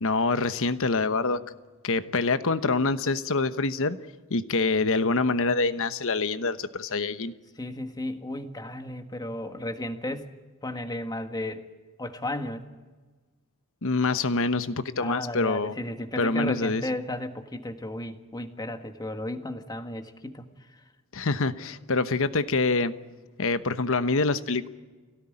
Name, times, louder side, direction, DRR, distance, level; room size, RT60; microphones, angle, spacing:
voice 1, 0.0-1.4 1.8-4.0 4.3-7.3 13.8-15.7 16.2-16.8 21.1-22.9 23.4-24.7, left 3 dB, 65° left, 12 dB, 1.1 m, -25 dB
voice 2, 7.5-10.3 10.6-11.7 12.0-12.6 15.0-20.5, left 1 dB, 20° left, 7 dB, 1.6 m, -34 dB
25.0 x 17.5 x 10.0 m, 1.3 s
head